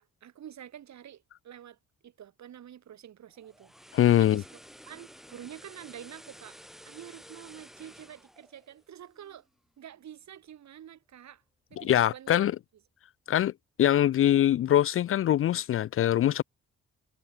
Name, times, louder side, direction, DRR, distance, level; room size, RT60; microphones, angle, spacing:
voice 1, 0.0-1.8 2.0-3.7 4.1-4.6 4.9-6.6 6.9-9.5 9.8-11.4 11.7-12.5, right 10 dB, 65° right, 4.8 m, -47 dB
sound 1, 3.3-9.5 9.8-10.0, equal, ahead, 5.6 m, -52 dB
voice 2, 3.9-4.4 11.8-12.5 13.3-13.5 13.8-16.4, left 11 dB, 45° left, 0.4 m, -23 dB
cardioid pair, 90°, 30 cm